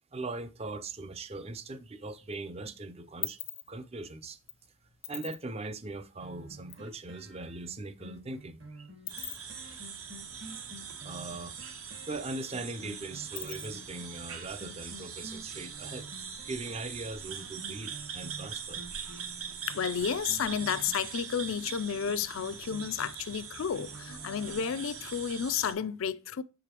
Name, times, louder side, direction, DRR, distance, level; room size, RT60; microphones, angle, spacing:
voice 1, 0.1-3.4 3.7-4.4 5.1-8.9 11.0-11.6 12.1-16.1 16.5-18.8, right 3 dB, 25° right, 0.4 m, -40 dB
sound 1, 1.6-2.3 2.7-6.9 7.2-7.3 7.5-11.3 11.6-11.7 12.0-14.0, left 14 dB, 80° left, 0.8 m, -43 dB
sound 2, 6.2-24.9 25.3-25.4, right 1 dB, 55° right, 1.2 m, -50 dB
sound 3, 9.1-25.7, right 7 dB, 75° right, 1.2 m, -42 dB
voice 2, 19.7-26.4, left 7 dB, 65° left, 0.4 m, -32 dB
6.6 x 4.9 x 2.9 m
head